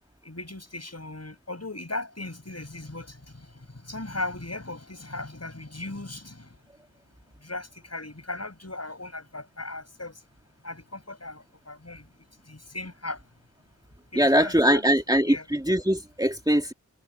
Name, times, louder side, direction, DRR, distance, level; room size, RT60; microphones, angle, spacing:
voice 1, 0.2-3.5 3.7-6.5 7.4-10.1 10.6-12.0 12.5-13.2 14.1-14.8 15.2-15.5, left 2 dB, 50° left, 7.9 m, -37 dB
voice 2, 14.2-16.7, equal, 10° right, 2.3 m, -22 dB
wide cardioid pair, 45°, 31 cm